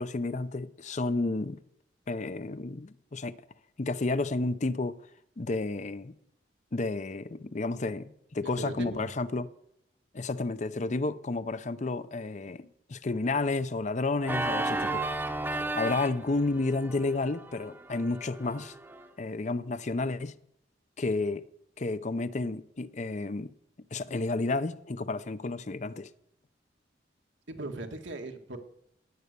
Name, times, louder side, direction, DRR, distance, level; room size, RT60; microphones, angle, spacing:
voice 1, 0.0-1.6 2.1-3.4 3.8-5.0 5.4-6.2 6.7-9.5 10.1-15.2 15.7-18.7 19.2-20.4 21.0-21.4 21.8-23.5 23.9-26.1, left 3 dB, 40° left, 0.6 m, -31 dB
voice 2, 8.4-9.1 27.5-28.6, right 2 dB, 85° right, 1.9 m, -39 dB
Organ, 14.2-19.1, right 2 dB, 10° right, 0.8 m, -34 dB
16.5 x 9.8 x 6.8 m
head